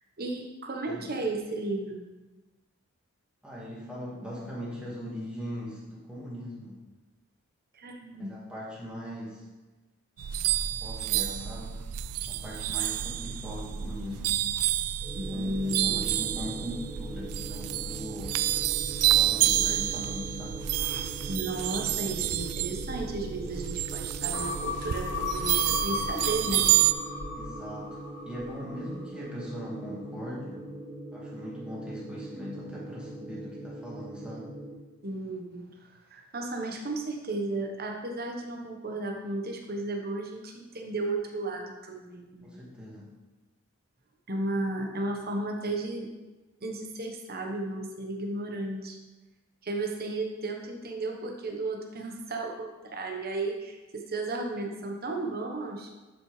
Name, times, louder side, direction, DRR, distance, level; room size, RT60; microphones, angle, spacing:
voice 1, 0.2-2.0 7.7-8.3 10.3-10.5 15.2-16.0 21.3-26.6 35.0-35.6 36.1-42.6 44.3-46.1 46.6-49.0 49.6-55.9, right 2 dB, 45° right, 1 dB, 1.1 m, -34 dB
voice 2, 3.4-6.8 8.2-9.4 10.8-11.8 12.3-14.4 15.3-18.4 19.1-20.6 27.3-28.0 28.2-30.6 31.1-34.5 42.4-43.1, equal, 5° right, -6 dB, 1.7 m, -40 dB
sound 1, 10.2-26.9, right 13 dB, 90° right, 0.4 m, -29 dB
sound 2, 15.0-34.7, right 1 dB, 15° left, 2.8 m, -42 dB
sound 3, 24.3-29.0 29.4-29.5, left 4 dB, 80° left, 2.5 m, -36 dB
11.0 x 5.7 x 3.3 m, 1.2 s
head